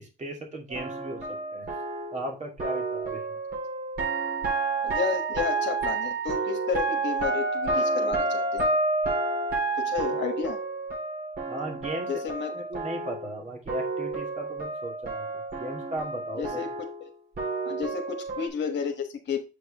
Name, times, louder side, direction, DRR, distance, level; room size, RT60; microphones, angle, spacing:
voice 1, 0.0-1.7 2.1-3.4 11.5-12.1 12.5-16.6, right 1 dB, 35° right, 2 dB, 2.4 m, -37 dB
sound 1, 0.7-13.4 13.7-18.5, right 3 dB, 55° right, 4.0 m, -30 dB
voice 2, 4.8-8.8 9.7-10.6 12.1-12.5 16.4-16.7 17.6-19.4, left 7 dB, 65° left, 3 dB, 1.4 m, -32 dB
7.8 x 4.9 x 3.5 m, 0.29 s
cardioid pair, 90°, 20 cm